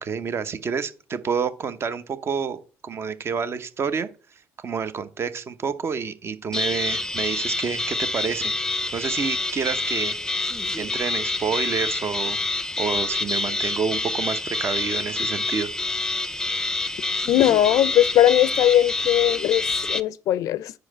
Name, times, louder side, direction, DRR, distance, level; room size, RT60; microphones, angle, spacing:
voice 1, 0.0-4.1 4.6-8.5 8.9-10.5 10.8-12.4 12.8-15.7, right 6 dB, 45° right, 0.8 m, -28 dB
sound 1, 6.5-20.0, left 2 dB, 10° left, 0.5 m, -27 dB
voice 2, 17.3-20.7, left 12 dB, 75° left, 0.4 m, -19 dB
5.1 x 4.8 x 6.0 m
supercardioid pair, 75°, 6 cm